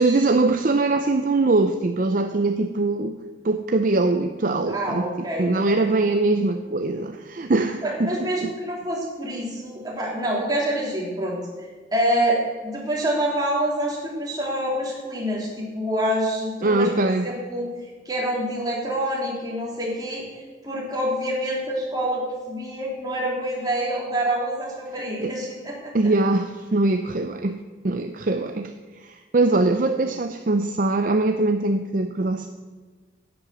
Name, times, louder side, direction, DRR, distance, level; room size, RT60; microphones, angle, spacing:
voice 1, 0.0-3.1 3.4-8.1 8.4-8.5 16.6-17.3 25.2-25.3 25.9-27.6 27.8-32.5, right 2 dB, 45° right, 7 dB, 0.5 m, -22 dB
voice 2, 4.6-5.7 7.8-16.9 17.2-20.2 20.6-25.9, right 1 dB, 20° right, -4 dB, 3.1 m, -27 dB
10.5 x 8.7 x 6.8 m, 1.4 s
head